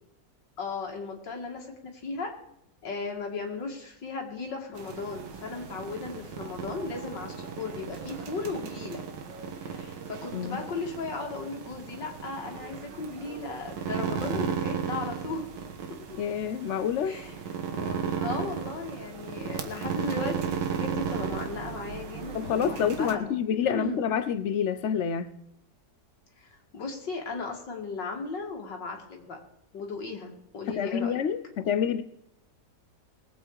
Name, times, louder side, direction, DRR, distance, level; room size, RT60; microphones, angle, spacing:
voice 1, 0.6-2.3 2.8-9.1 9.6-15.5 17.0-17.4 17.7-23.3 23.6-24.0 26.4-29.4 29.7-31.2, left 4 dB, 90° left, 2 dB, 2.8 m, -36 dB
sound 1, 4.8-23.1, right 7 dB, 85° right, 1.9 m, -35 dB
voice 2, 16.1-17.2 22.3-25.3 30.7-32.0, left 8 dB, 55° left, 12 dB, 0.9 m, -28 dB
20.5 x 8.4 x 4.8 m, 0.78 s
omnidirectional pair, 1.9 m